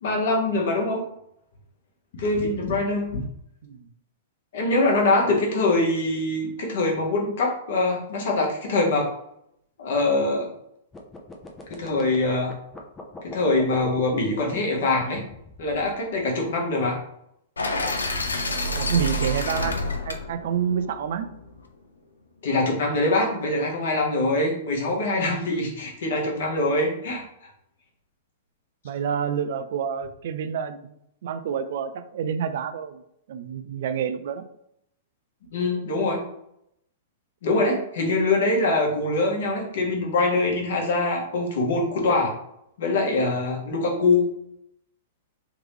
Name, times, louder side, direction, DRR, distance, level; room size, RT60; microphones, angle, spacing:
voice 1, 0.0-1.0 2.1-3.2 4.5-9.1 9.8-10.5 11.8-12.6 13.2-15.2 15.6-17.0 22.4-27.2 35.5-36.2 37.4-42.3 42.8-44.3, left 2 dB, 60° left, -1 dB, 1.3 m, -23 dB
sound 1, 10.9-16.2, left 3 dB, 15° left, 0.7 m, -40 dB
sound 2, 17.6-21.6, left 1 dB, 80° left, 0.5 m, -28 dB
voice 2, 18.7-21.3 28.8-30.9 31.2-33.0 33.3-34.4, right 7 dB, 60° right, 10 dB, 0.4 m, -28 dB
3.6 x 3.1 x 3.2 m, 0.75 s
figure-of-eight pair, 105°, 0 cm